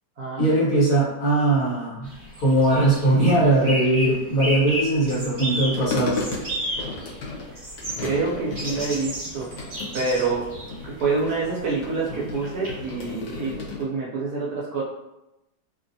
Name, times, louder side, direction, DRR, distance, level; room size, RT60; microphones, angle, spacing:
voice 1, 0.4-2.1 2.4-6.2, right 2 dB, 55° left, -8 dB, 1.5 m, -20 dB
sound 1, 2.0-13.1, equal, 30° right, 1.3 m, -34 dB
sound 2, 5.5-13.8, left 3 dB, 80° left, 1.4 m, -35 dB
voice 2, 8.0-9.5 9.9-10.5 10.8-14.8, right 4 dB, 70° right, -5 dB, 1.0 m, -27 dB
3.1 x 2.5 x 2.6 m, 0.92 s
omnidirectional pair, 1.9 m